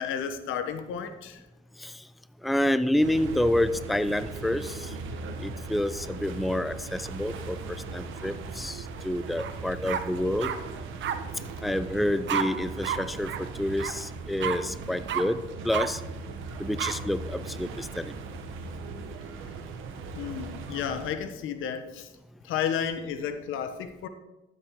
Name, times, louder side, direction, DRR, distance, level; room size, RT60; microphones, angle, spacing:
voice 1, 0.0-1.4 20.1-22.1 22.4-24.1, left 8 dB, 85° left, 9 dB, 1.0 m, -32 dB
voice 2, 2.4-4.9 5.4-10.5 11.6-16.0 16.6-18.1, left 1 dB, ahead, 13 dB, 0.4 m, -28 dB
sound 1, 3.0-21.1, right 4 dB, 90° right, 1.2 m, -39 dB
sound 2, 9.4-9.5 9.9-10.6 11.0-11.2 12.3-12.4 12.8-13.0 13.2-13.4 13.8-13.9 14.4-14.6 15.1-15.2 15.7-15.9 16.8-16.9, right 9 dB, 70° right, 0.8 m, -29 dB
13.5 x 7.7 x 3.7 m, 1.0 s
cardioid pair, 90°, 20 cm